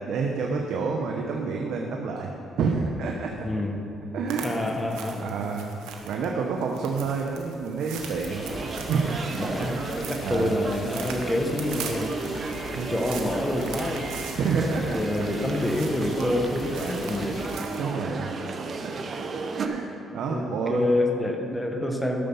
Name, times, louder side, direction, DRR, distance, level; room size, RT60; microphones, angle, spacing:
voice 1, 0.0-2.3 2.6-3.5 4.1-5.8 6.0-8.5 8.9-9.7 10.2-10.6 12.7-12.9 14.4-15.0 17.8-18.3 18.8-18.9 19.2-20.9, right 5 dB, 75° right, 1 dB, 0.9 m, -29 dB
voice 2, 3.4-3.9 4.4-5.3 9.4-12.1 12.9-14.1 14.9-17.5 20.3-22.3, left 1 dB, 10° left, 3 dB, 1.3 m, -27 dB
sound 1, 4.3-17.9, right 6 dB, 90° right, 1.2 m, -42 dB
sound 2, 8.0-17.6, left 5 dB, 45° left, 0.4 m, -42 dB
sound 3, 8.3-19.7, right 4 dB, 50° right, 0.9 m, -34 dB
13.0 x 6.7 x 5.6 m, 2.8 s
cardioid pair, 85°, 0 cm